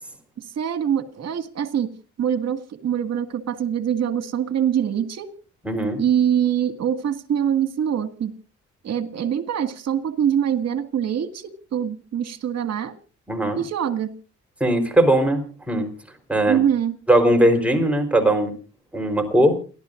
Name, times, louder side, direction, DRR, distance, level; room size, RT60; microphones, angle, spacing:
voice 1, 0.4-1.9 2.2-5.3 6.0-8.3 8.8-12.9 13.6-14.1 16.5-17.0, right 9 dB, 60° right, 7 dB, 2.0 m, -24 dB
voice 2, 5.7-6.0 13.3-13.6 14.6-15.4 15.7-15.9 16.3-16.6 17.1-18.5 18.9-19.6, right 1 dB, 5° right, 3 dB, 4.2 m, -19 dB
28.5 x 12.5 x 2.6 m, 0.36 s
cardioid pair, 90°, 30 cm